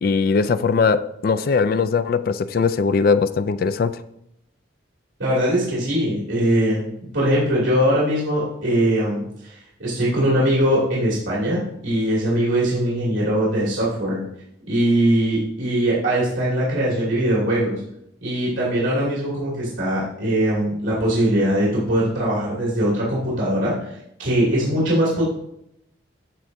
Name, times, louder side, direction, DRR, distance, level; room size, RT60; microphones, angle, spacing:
voice 1, 0.0-4.0, left 5 dB, 50° left, 13 dB, 0.3 m, -20 dB
voice 2, 5.2-6.8 7.1-14.2 14.7-17.8 18.2-25.2, right 1 dB, 80° right, -7 dB, 2.6 m, -21 dB
13.5 x 4.6 x 2.6 m, 0.78 s
head